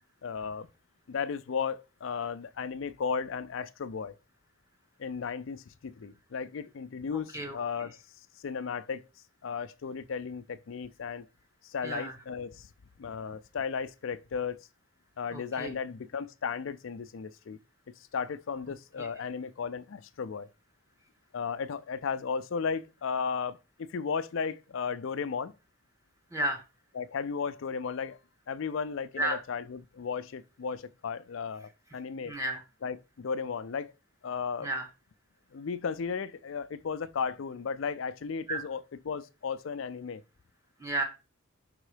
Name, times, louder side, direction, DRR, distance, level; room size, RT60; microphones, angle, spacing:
voice 1, 0.2-0.7 1.1-4.1 5.0-8.0 8.4-9.0 9.4-11.3 11.6-12.7 13.0-14.7 15.2-17.6 18.1-20.5 21.3-25.5 27.0-28.2 28.5-32.3 32.8-33.9 34.2-34.7 35.5-38.8 39.1-40.2, left 6 dB, 70° left, 0.4 m, -35 dB
voice 2, 11.8-12.1 15.3-15.8 19.0-19.1 26.3-26.6 29.2-29.4 32.2-32.6 34.6-34.9 38.5-38.6 40.8-41.0, right 2 dB, 15° right, 0.9 m, -32 dB
5.5 x 3.7 x 4.9 m
head